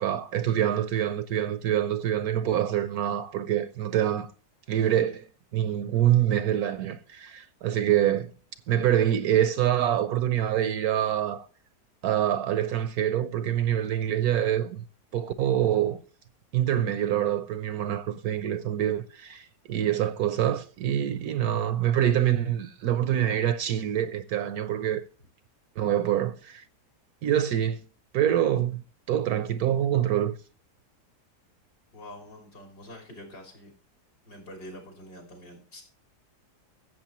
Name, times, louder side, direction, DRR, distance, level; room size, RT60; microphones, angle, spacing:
voice 1, 0.0-4.3 4.7-5.3 5.5-8.3 8.7-11.5 12.0-14.8 15.1-16.0 16.5-25.0 25.8-26.6 27.2-27.8 28.1-28.8 29.1-30.3, right 11 dB, 70° right, 1.0 m, -25 dB
voice 2, 31.9-33.7 34.3-35.8, left 1 dB, 65° left, 3.8 m, -45 dB
14.0 x 7.8 x 3.0 m
omnidirectional pair, 1.8 m